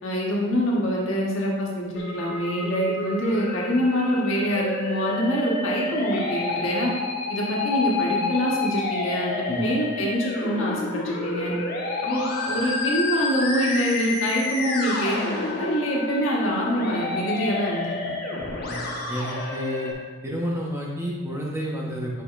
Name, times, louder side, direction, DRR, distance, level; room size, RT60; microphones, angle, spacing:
voice 1, 0.0-6.9 7.3-11.5 12.0-18.0, equal, 80° left, -4 dB, 1.5 m, -25 dB
Musical instrument, 2.0-19.9, left 3 dB, 50° left, 1.0 m, -29 dB
voice 2, 19.1-19.9 20.2-22.1, equal, 15° right, -3 dB, 1.0 m, -30 dB
8.3 x 5.1 x 2.6 m, 1.4 s
head